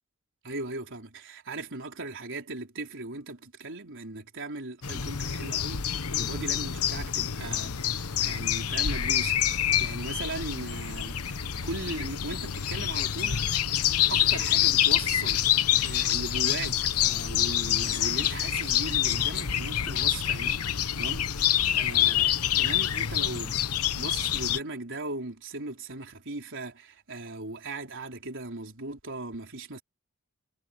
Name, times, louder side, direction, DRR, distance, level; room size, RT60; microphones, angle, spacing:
voice 1, 0.4-13.5 14.1-23.6 23.9-29.8, right 2 dB, 60° right, 4.4 m, -38 dB
sound 1, 4.8-24.6, left 10 dB, 85° left, 1.1 m, -27 dB
head